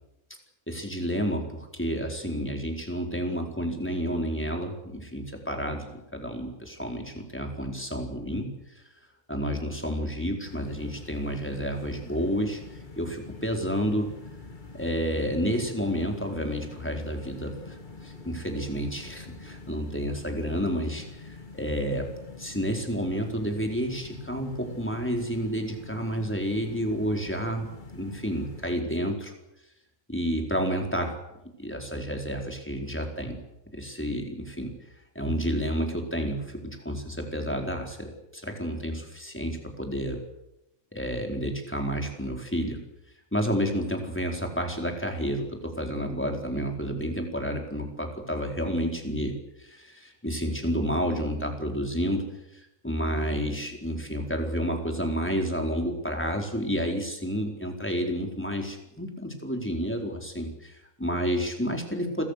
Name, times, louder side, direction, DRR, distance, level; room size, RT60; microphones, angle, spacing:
voice 1, 0.7-8.5 9.3-12.6 13.0-14.1 14.7-22.1 22.4-29.3 30.1-31.2 31.6-33.4 33.7-34.7 35.1-40.2 40.9-42.8 43.3-52.2 52.5-62.3, equal, 10° left, 2 dB, 4.4 m, -30 dB
sound 1, 10.4-28.8, left 3 dB, 35° left, 2.0 m, -45 dB
29.5 x 24.0 x 6.7 m, 0.88 s
omnidirectional pair, 1.5 m